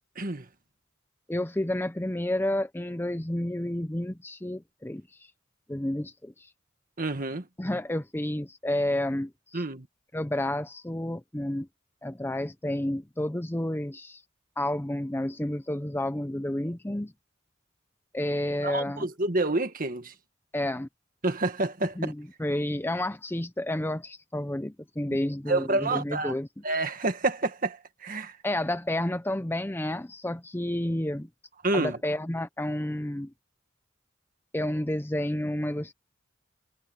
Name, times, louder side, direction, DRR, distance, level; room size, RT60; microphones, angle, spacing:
voice 1, 0.2-0.5 7.0-7.5 9.5-9.9 18.6-20.1 21.2-22.1 25.5-26.4 26.6-28.4 31.6-32.0, right 2 dB, 45° right, 1.8 m, -28 dB
voice 2, 1.3-5.0 5.7-6.5 7.6-9.6 10.1-11.7 12.0-14.2 14.6-17.1 18.1-19.1 20.5-20.9 22.0-26.5 28.4-31.3 31.7-33.3 34.5-35.9, left 1 dB, 10° left, 0.6 m, -30 dB
head